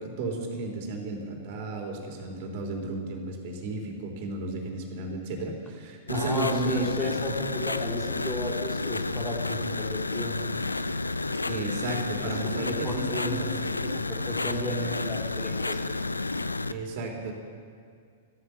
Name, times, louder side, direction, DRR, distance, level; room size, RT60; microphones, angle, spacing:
voice 1, 0.0-7.2 11.5-14.0 16.7-17.3, right 2 dB, 50° right, 3 dB, 3.4 m, -33 dB
sound 1, 6.1-16.7, left 3 dB, 85° left, 0.5 m, -31 dB
voice 2, 6.1-10.4 12.1-13.4 13.9-15.8, left 1 dB, 10° left, -1 dB, 3.0 m, -34 dB
14.5 x 14.0 x 6.6 m, 2.2 s
figure-of-eight pair, 100°, 0 cm